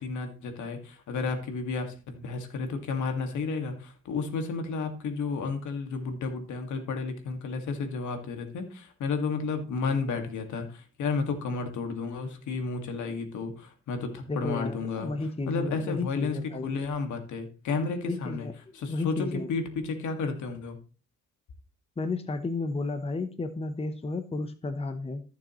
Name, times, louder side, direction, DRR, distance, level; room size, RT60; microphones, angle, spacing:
voice 1, 0.0-15.1 15.5-18.5 18.7-20.8, left 4 dB, 75° left, 6 dB, 2.0 m, -32 dB
voice 2, 14.3-16.8 18.1-18.5 18.9-19.5 22.0-25.2, left 3 dB, 20° left, 9 dB, 0.8 m, -32 dB
14.0 x 6.8 x 3.1 m, 0.36 s
cardioid pair, 90°, 30 cm